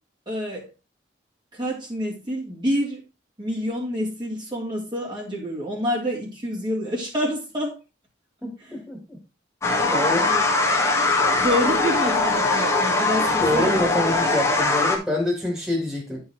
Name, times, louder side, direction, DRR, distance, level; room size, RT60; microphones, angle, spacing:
voice 1, 0.3-0.7 1.5-3.0 3.4-7.8 10.2-10.4 11.4-13.9, equal, 25° right, 2.9 m, -27 dB
voice 2, 8.4-9.2 9.9-10.3 13.4-16.2, left 1 dB, 5° right, 2.8 m, -26 dB
sound 1, 9.6-15.0, left 3 dB, 15° left, 1.8 m, -21 dB
11.0 x 4.8 x 4.5 m
head